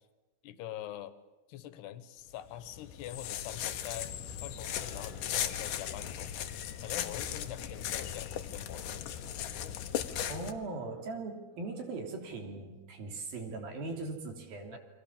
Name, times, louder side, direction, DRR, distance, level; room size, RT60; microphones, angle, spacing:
voice 1, 0.4-1.2 1.5-4.1 4.4-6.3 6.8-9.1 14.7-14.8, left 12 dB, 80° left, 14 dB, 3.3 m, -44 dB
sound 1, 2.3-10.5, left 10 dB, 65° left, 2.5 m, -37 dB
sound 2, 4.6-6.4 6.7-8.2 8.6-9.6 10.0-11.2 11.5-12.2, left 1 dB, 25° right, 6.1 m, -57 dB
voice 2, 10.3-14.8, right 3 dB, 65° right, 4 dB, 4.8 m, -39 dB
29.0 x 23.0 x 7.3 m, 1.2 s
omnidirectional pair, 4.7 m